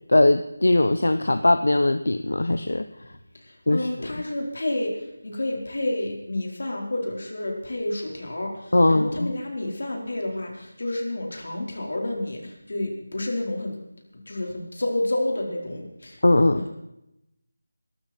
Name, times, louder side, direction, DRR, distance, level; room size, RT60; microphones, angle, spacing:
voice 1, 0.1-2.9 3.7-4.1 8.7-9.3 16.2-16.7, left 2 dB, 90° left, 9 dB, 0.9 m, -20 dB
voice 2, 3.4-13.8 14.3-16.7, left 1 dB, 70° left, 0 dB, 4.6 m, -30 dB
21.0 x 12.5 x 4.5 m, 0.86 s
figure-of-eight pair, 175°, 0 cm